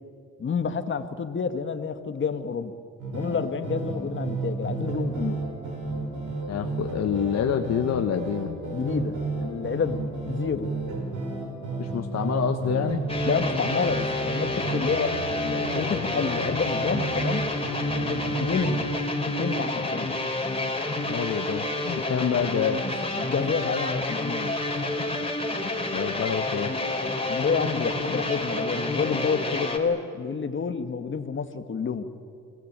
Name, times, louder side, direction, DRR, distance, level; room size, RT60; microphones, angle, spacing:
voice 1, 0.4-2.7 3.1-5.4 8.7-10.7 13.3-17.4 18.0-18.9 19.3-20.1 23.2-24.6 27.3-32.1, left 5 dB, 40° left, 9 dB, 1.8 m, -29 dB
sound 1, 3.0-18.8, right 3 dB, 80° right, 5.8 m, -32 dB
voice 2, 6.5-8.5 11.8-13.0 21.1-22.8 25.9-26.7, left 8 dB, 60° left, 6 dB, 1.4 m, -27 dB
sound 2, 13.1-29.8, left 2 dB, 20° left, 3.4 m, -29 dB
29.5 x 20.0 x 8.9 m, 2.5 s
cardioid pair, 90°, 30 cm